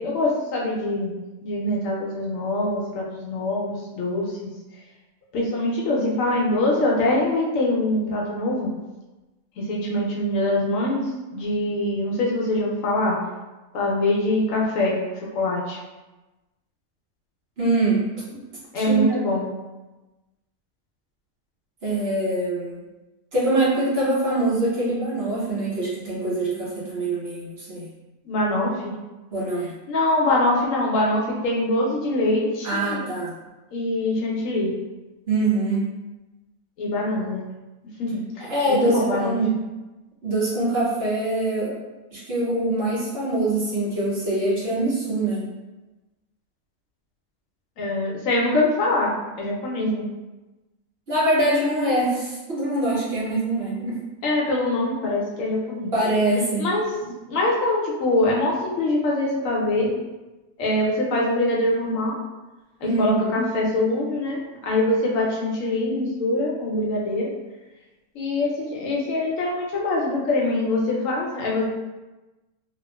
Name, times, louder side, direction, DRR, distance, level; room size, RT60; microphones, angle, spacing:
voice 1, 0.0-4.5 5.3-8.7 9.6-13.2 13.7-15.0 15.3-15.8 18.7-19.5 28.3-28.9 29.9-33.0 33.7-34.7 36.8-37.5 38.0-39.4 47.8-50.0 54.2-55.9 56.6-56.9 57.3-60.0 60.6-62.2 62.8-67.3 68.1-71.6, left 1 dB, 75° left, -3 dB, 0.9 m, -24 dB
voice 2, 17.6-18.4 18.7-19.0 21.8-22.8 23.3-27.9 29.3-29.7 32.6-33.3 35.3-35.8 38.4-39.5 40.2-41.7 42.1-45.4 51.1-54.0 55.9-56.7 62.8-63.4, right 2 dB, 55° right, -7 dB, 0.8 m, -24 dB
2.8 x 2.4 x 2.2 m, 1.1 s
omnidirectional pair, 1.4 m